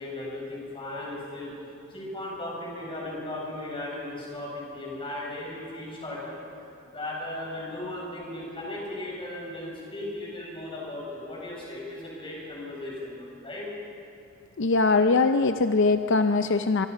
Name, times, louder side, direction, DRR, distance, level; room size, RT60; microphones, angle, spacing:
voice 1, 0.0-1.5 1.9-6.4 6.9-13.7, left 1 dB, 25° left, -4 dB, 7.5 m, -36 dB
voice 2, 14.6-16.9, left 3 dB, 60° left, 9 dB, 0.6 m, -22 dB
25.0 x 24.0 x 5.8 m, 2.8 s
head